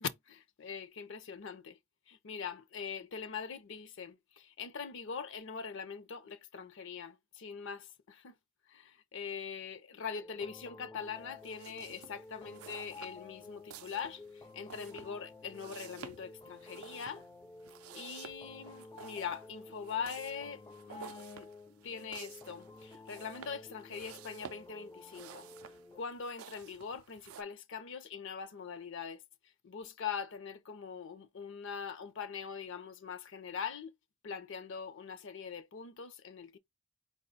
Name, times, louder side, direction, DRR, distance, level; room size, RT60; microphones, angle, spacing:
voice 1, 0.0-1.8 2.1-8.3 8.7-17.3 17.9-20.6 20.9-21.5 21.8-25.5 25.9-29.2 29.6-33.9 34.2-36.6, left 6 dB, 60° left, 0.6 m, -42 dB
sound 1, 10.2-26.0, left 3 dB, 15° left, 0.3 m, -52 dB
sound 2, 11.4-27.4, right 8 dB, 85° right, 0.4 m, -53 dB
4.8 x 2.2 x 3.9 m
head